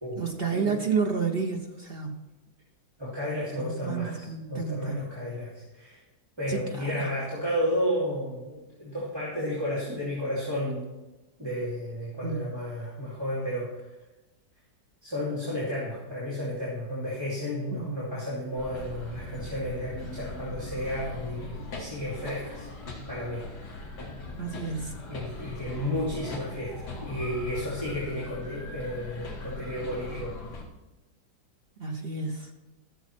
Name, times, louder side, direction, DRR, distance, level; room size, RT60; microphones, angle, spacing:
voice 1, 0.2-2.2 3.6-5.0 6.5-7.1 12.2-12.6 17.7-18.1 24.4-24.9 31.8-32.5, right 5 dB, 55° right, 2 dB, 0.6 m, -31 dB
voice 2, 3.0-6.0 6.4-10.8 11.4-13.8 15.0-22.7 23.1-23.5 25.1-30.4, equal, 10° right, -9 dB, 2.4 m, -32 dB
sound 1, 18.6-30.6, left 3 dB, 50° left, 2.2 m, -40 dB
14.0 x 7.2 x 4.4 m, 1.1 s
omnidirectional pair, 2.2 m